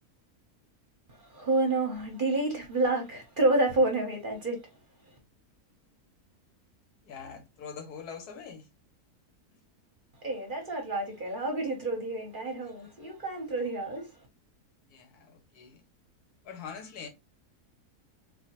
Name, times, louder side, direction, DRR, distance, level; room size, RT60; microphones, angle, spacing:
voice 1, 1.1-4.7 10.2-14.1, right 2 dB, 40° right, 0.8 m, -29 dB
voice 2, 7.0-8.7 14.9-15.8 16.4-17.1, left 6 dB, 80° left, 1.4 m, -43 dB
4.1 x 2.3 x 2.9 m
omnidirectional pair, 1.6 m